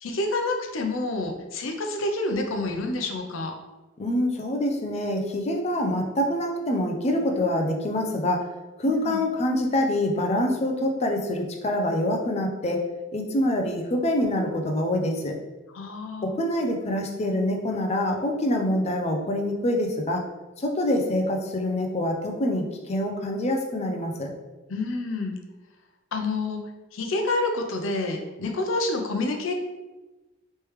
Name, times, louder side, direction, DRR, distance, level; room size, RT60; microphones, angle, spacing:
voice 1, 0.0-3.6 8.8-9.2 15.7-16.4 24.7-25.4 26.1-26.6 26.9-29.5, left 2 dB, 85° left, 3 dB, 0.5 m, -28 dB
voice 2, 4.0-8.4 8.8-12.8 13.1-15.3 16.2-20.2 20.6-24.3, left 1 dB, 35° left, 2 dB, 0.5 m, -25 dB
3.2 x 3.2 x 3.1 m, 1.1 s
head